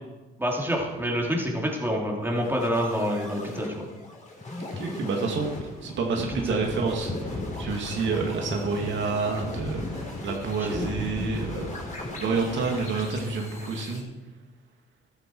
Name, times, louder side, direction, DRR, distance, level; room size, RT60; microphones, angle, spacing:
voice 1, 0.4-3.9 6.3-6.7 10.6-10.9, equal, 10° right, -1 dB, 3.2 m, -27 dB
sound 1, 2.2-14.0, left 2 dB, 40° left, 4.0 m, -36 dB
voice 2, 4.8-14.0, right 4 dB, 70° right, 1 dB, 2.2 m, -29 dB
14.0 x 11.0 x 4.7 m, 1.1 s
cardioid pair, 90°, 20 cm